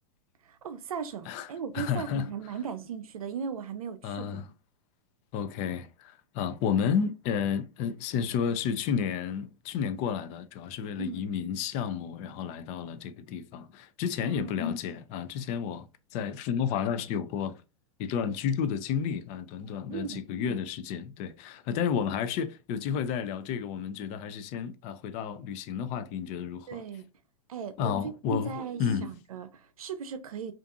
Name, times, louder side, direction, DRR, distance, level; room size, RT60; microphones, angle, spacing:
voice 1, 0.5-4.4 11.0-11.3 14.2-14.5 19.9-20.3 26.7-27.1 27.5-30.5, right 6 dB, 80° right, 0.5 m, -37 dB
voice 2, 1.7-2.3 4.0-4.5 5.3-17.6 18.0-26.8 27.8-28.5 28.8-29.1, left 7 dB, 40° left, 0.4 m, -31 dB
2.6 x 2.4 x 2.3 m
hypercardioid pair, 110°, 18 cm